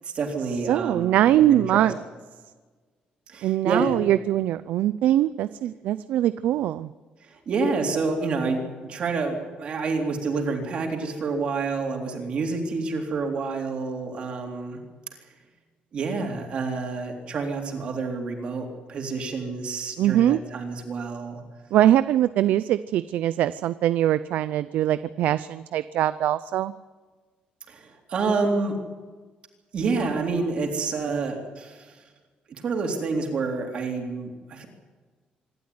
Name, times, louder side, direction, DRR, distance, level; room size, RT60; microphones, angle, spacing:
voice 1, 0.0-1.9 3.3-4.0 7.2-14.8 15.9-21.4 27.7-28.7 29.7-32.0 32.5-34.7, right 4 dB, 40° right, 2 dB, 3.7 m, -28 dB
voice 2, 0.7-2.0 3.4-6.9 20.0-20.4 21.7-26.7, right 12 dB, 80° right, 14 dB, 0.6 m, -22 dB
26.0 x 13.0 x 9.7 m, 1.4 s
cardioid pair, 180°, 3 cm